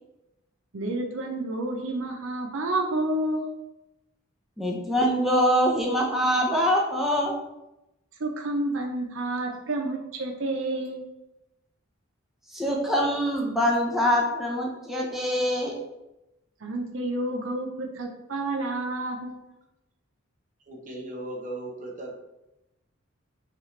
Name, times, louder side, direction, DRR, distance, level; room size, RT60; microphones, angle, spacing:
voice 1, 0.7-3.4 8.2-11.0 16.6-19.4, right 2 dB, 70° right, 1 dB, 0.6 m, -29 dB
voice 2, 4.6-7.4 12.5-15.7, equal, ahead, -3 dB, 0.7 m, -24 dB
voice 3, 20.7-22.2, right 1 dB, 40° right, 0 dB, 0.9 m, -37 dB
6.0 x 2.5 x 3.1 m, 0.92 s
head